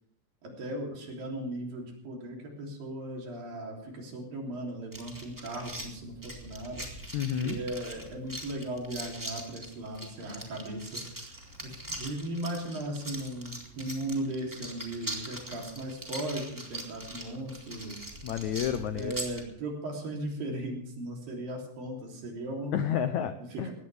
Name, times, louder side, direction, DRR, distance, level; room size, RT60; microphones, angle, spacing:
voice 1, 0.4-6.9 7.4-11.3 11.6-18.1 18.9-22.8 23.5-23.7, right 1 dB, 65° right, 0 dB, 5.0 m, -37 dB
Sea shells, 4.9-19.4, right 1 dB, 5° right, 1.7 m, -42 dB
voice 2, 7.1-7.6 18.2-19.1 22.7-23.7, left 9 dB, 85° left, 9 dB, 1.6 m, -30 dB
20.0 x 16.0 x 3.5 m, 0.70 s
omnidirectional pair, 4.3 m